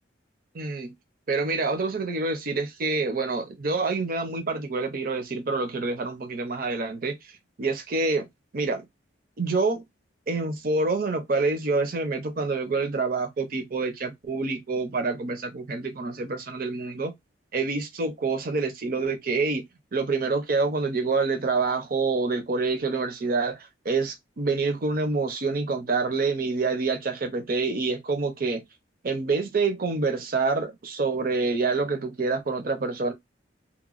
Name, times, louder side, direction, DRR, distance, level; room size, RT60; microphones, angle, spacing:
voice 1, 0.5-0.9 1.3-7.3 7.6-8.3 8.5-8.8 9.4-9.8 10.3-17.1 17.5-19.7 19.9-28.6 29.0-33.1, right 3 dB, 50° right, 0.6 m, -27 dB
2.9 x 2.2 x 2.4 m
head